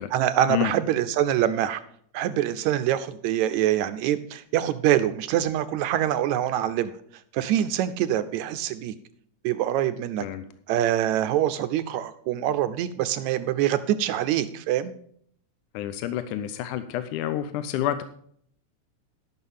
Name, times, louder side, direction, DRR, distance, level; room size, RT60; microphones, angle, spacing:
voice 1, 0.1-1.8 2.1-6.9 7.3-8.9 9.4-10.3 10.7-14.9, right 11 dB, 75° right, 12 dB, 1.8 m, -25 dB
voice 2, 15.7-18.0, left 12 dB, 80° left, 11 dB, 2.1 m, -28 dB
12.5 x 6.3 x 5.5 m, 0.63 s
omnidirectional pair, 3.6 m